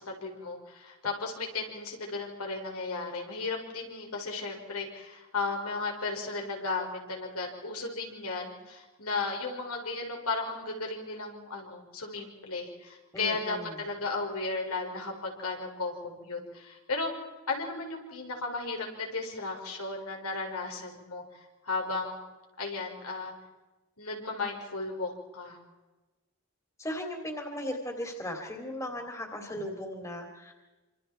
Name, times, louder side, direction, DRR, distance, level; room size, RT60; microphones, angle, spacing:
voice 1, 0.0-17.1 17.5-22.2 22.6-23.3 24.0-25.6, left 3 dB, 85° left, 1 dB, 5.9 m, -35 dB
voice 2, 13.1-13.7 26.8-30.5, left 1 dB, 15° left, 3 dB, 3.0 m, -37 dB
27.5 x 26.5 x 4.5 m, 1.1 s
head